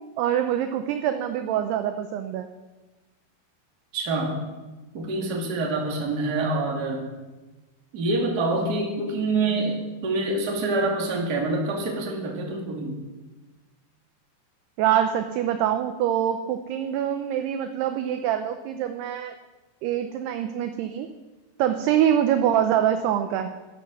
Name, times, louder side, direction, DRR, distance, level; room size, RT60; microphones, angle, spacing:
voice 1, 0.2-2.5 14.8-19.3 19.8-21.1 21.6-23.5, right 10 dB, 80° right, 7 dB, 2.4 m, -24 dB
voice 2, 3.9-4.4 4.9-7.1 7.9-13.0, right 2 dB, 35° right, -1 dB, 1.8 m, -26 dB
12.5 x 11.5 x 6.2 m, 1.2 s
omnidirectional pair, 5.4 m